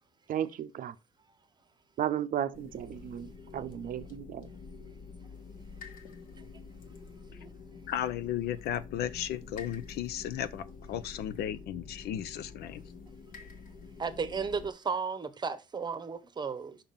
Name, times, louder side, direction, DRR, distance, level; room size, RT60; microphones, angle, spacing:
voice 1, 0.3-0.9 2.0-4.5, right 10 dB, 55° right, 0.6 m, -34 dB
sound 1, 2.5-14.7, left 4 dB, 55° left, 1.3 m, -48 dB
voice 2, 7.9-12.8, left 11 dB, 70° left, 0.7 m, -35 dB
voice 3, 14.0-16.8, right 5 dB, 25° right, 0.9 m, -34 dB
5.8 x 3.6 x 5.6 m
cardioid pair, 110°, 17 cm